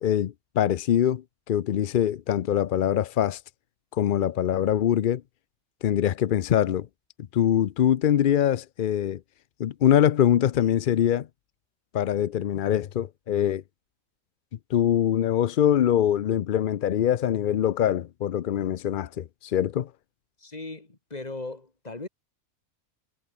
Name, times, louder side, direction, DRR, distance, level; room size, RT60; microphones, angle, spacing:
voice 1, 0.0-3.4 3.9-5.2 5.8-6.9 7.3-9.2 9.6-11.3 11.9-13.6 14.7-19.9, left 10 dB, 70° left, 0.5 m, -23 dB
voice 2, 20.4-22.1, left 3 dB, 30° left, 2.4 m, -38 dB
omnidirectional pair, 1.5 m